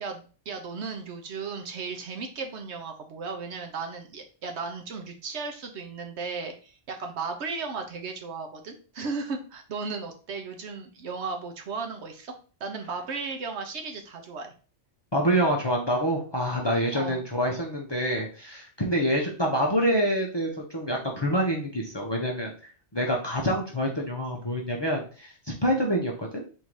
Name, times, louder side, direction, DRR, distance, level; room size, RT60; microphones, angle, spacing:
voice 1, 0.0-12.3 12.6-14.5 16.9-17.2, right 4 dB, 65° right, 4 dB, 1.0 m, -35 dB
voice 2, 15.1-22.5 22.9-25.3 25.6-26.4, equal, 25° left, 0 dB, 0.6 m, -26 dB
3.7 x 2.7 x 4.6 m, 0.37 s
omnidirectional pair, 1.2 m